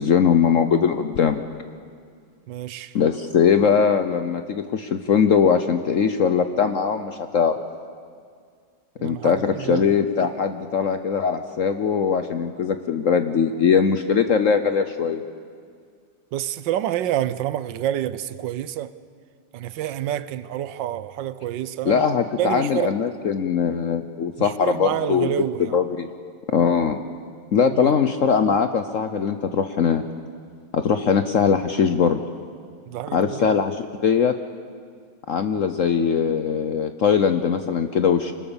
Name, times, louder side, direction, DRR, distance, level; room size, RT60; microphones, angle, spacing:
voice 1, 0.0-1.4 2.9-7.5 9.0-15.2 21.9-25.3 25.7-26.1 26.5-27.0 27.5-30.0 30.7-32.2 33.1-34.4 35.3-38.3, left 6 dB, 55° left, 1.0 m, -21 dB
voice 2, 2.5-3.0 9.0-9.9 16.3-18.9 19.5-22.0 22.4-23.0 24.4-25.8 27.7-27.9 32.9-33.5, right 12 dB, 85° right, 1.4 m, -28 dB
25.0 x 20.0 x 7.1 m
omnidirectional pair, 1.9 m